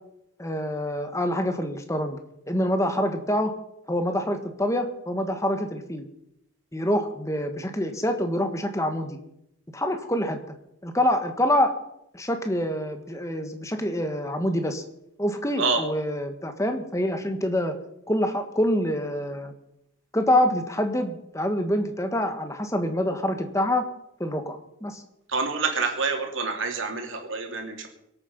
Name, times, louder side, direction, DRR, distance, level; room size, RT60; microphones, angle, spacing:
voice 1, 0.4-2.2 2.5-3.5 3.9-6.0 6.7-9.2 9.7-10.4 10.8-11.8 12.1-14.8 15.2-17.8 18.1-19.5 20.1-23.8 24.2-25.0, left 1 dB, 15° left, 7 dB, 1.5 m, -26 dB
voice 2, 25.3-27.9, right 4 dB, 70° right, 2 dB, 3.0 m, -27 dB
24.0 x 8.9 x 5.4 m, 0.82 s
head